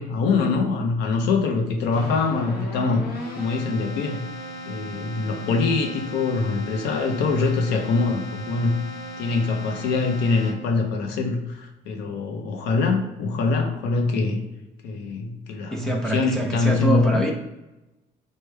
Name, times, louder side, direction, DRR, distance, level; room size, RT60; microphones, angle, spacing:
voice 1, 0.0-3.1 3.4-4.3 4.6-8.8 9.2-14.4 14.8-17.3, left 4 dB, 85° left, 3 dB, 0.6 m, -24 dB
Keyboard (musical), 1.9-10.9, equal, 65° left, 0.9 m, -36 dB
voice 2, 15.7-17.3, right 1 dB, 5° left, 0 dB, 0.4 m, -25 dB
3.3 x 2.1 x 3.2 m, 0.99 s
cardioid pair, 110°, 17 cm